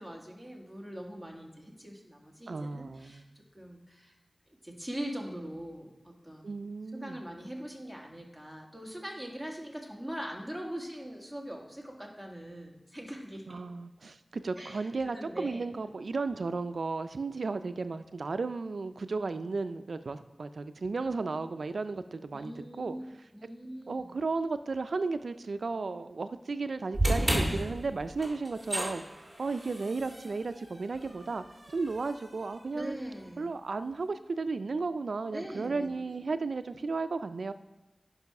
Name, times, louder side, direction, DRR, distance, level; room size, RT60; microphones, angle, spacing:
voice 1, 0.0-4.1 4.6-6.6 6.9-13.6 14.6-15.7 22.3-23.0 23.3-24.1 32.7-33.5 35.3-36.0, equal, 5° left, 0 dB, 2.0 m, -42 dB
voice 2, 2.5-3.3 6.4-7.2 13.5-23.0 23.9-31.4 31.7-33.0 33.4-37.5, right 3 dB, 90° right, 11 dB, 0.4 m, -34 dB
sound 1, 26.9-33.2, right 1 dB, 15° right, 2.5 m, -34 dB
10.5 x 5.5 x 5.9 m, 1.1 s
wide cardioid pair, 60°, 0 cm